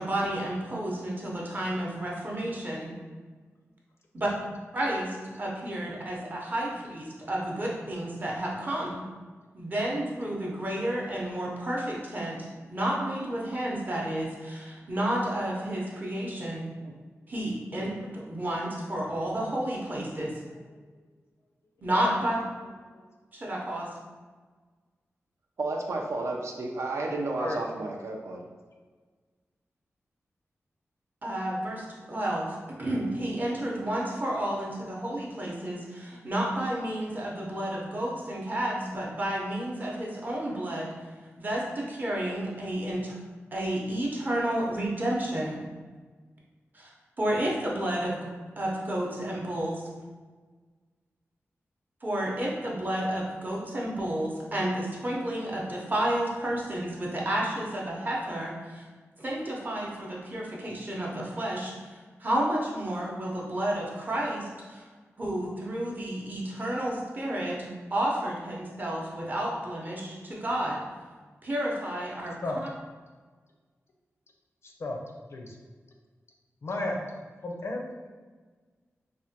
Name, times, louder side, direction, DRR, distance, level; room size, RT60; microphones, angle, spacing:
voice 1, 0.0-2.9 4.1-4.3 4.7-9.0 9.5-12.4 12.7-16.7 17.3-17.9 18.1-20.3 21.8-22.4 23.3-23.9 31.2-40.9 41.4-43.2 43.5-45.6 46.7-46.9 47.2-48.2 48.6-49.9 52.0-58.8 59.2-64.8 65.2-70.8 71.4-72.4, right 1 dB, 35° right, -3 dB, 0.7 m, -31 dB
voice 2, 25.6-28.4, right 2 dB, 70° right, 1 dB, 0.4 m, -32 dB
voice 3, 76.6-77.0 77.4-78.1, left 2 dB, 60° left, 1 dB, 0.4 m, -33 dB
3.3 x 2.1 x 2.7 m, 1.4 s
wide cardioid pair, 95°, 5 cm